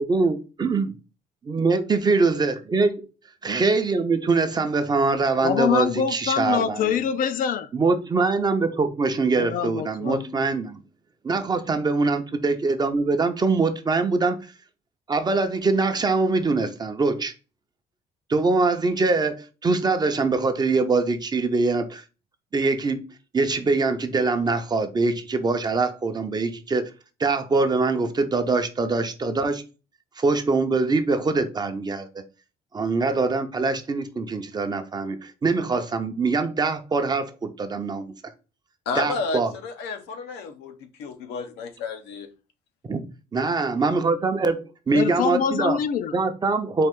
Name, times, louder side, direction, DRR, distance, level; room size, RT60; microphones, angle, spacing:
voice 1, 0.0-0.9 1.4-3.1 3.4-6.9 7.7-10.8 11.2-14.4 15.1-17.3 18.3-22.0 22.5-23.0 23.3-26.9 27.2-29.6 30.2-32.1 32.7-38.1 39.0-39.5 42.8-43.0 43.3-45.8 46.1-46.9, right 3 dB, 25° right, 0.6 m, -23 dB
voice 2, 5.4-7.7 9.4-10.2 44.9-46.2, left 8 dB, 55° left, 0.4 m, -25 dB
voice 3, 38.9-40.7 41.0-42.3, left 4 dB, 90° left, 0.8 m, -31 dB
4.3 x 2.4 x 3.5 m
cardioid pair, 110°, 17 cm